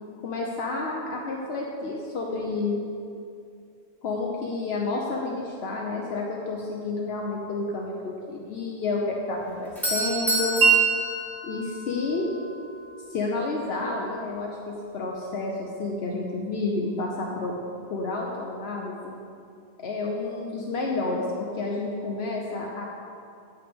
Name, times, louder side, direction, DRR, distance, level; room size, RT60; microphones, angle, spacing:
voice 1, 0.2-2.8 4.0-10.6 11.4-12.3 13.1-17.5 17.9-19.1 19.8-22.8, left 3 dB, 75° left, -2 dB, 1.0 m, -30 dB
Doorbell, 9.4-12.2, right 1 dB, ahead, 1.6 m, -30 dB
Wind chime, 10.6-16.7, right 7 dB, 70° right, 0.9 m, -29 dB
9.2 x 8.6 x 3.5 m, 2.5 s
omnidirectional pair, 1.1 m